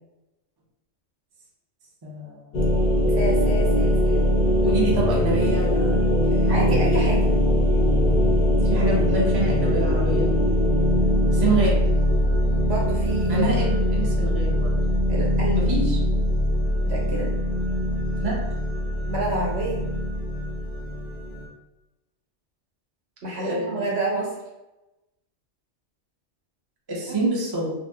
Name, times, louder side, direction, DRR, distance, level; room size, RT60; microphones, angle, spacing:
voice 1, 2.0-2.6 4.6-6.1 6.3-6.9 8.6-10.3 11.3-11.8 13.3-14.7 15.5-16.0 18.2-18.4 23.3-24.0 26.9-27.7, right 2 dB, 35° right, -4 dB, 0.4 m, -27 dB
sound 1, 2.5-21.4, equal, 55° left, 0.6 m, -21 dB
voice 2, 3.1-4.2 6.4-7.3 12.6-13.7 15.1-15.7 16.8-17.3 19.1-19.8 23.2-24.3, right 2 dB, 60° right, -4 dB, 1.1 m, -28 dB
2.6 x 2.0 x 3.4 m, 1.0 s
omnidirectional pair, 1.3 m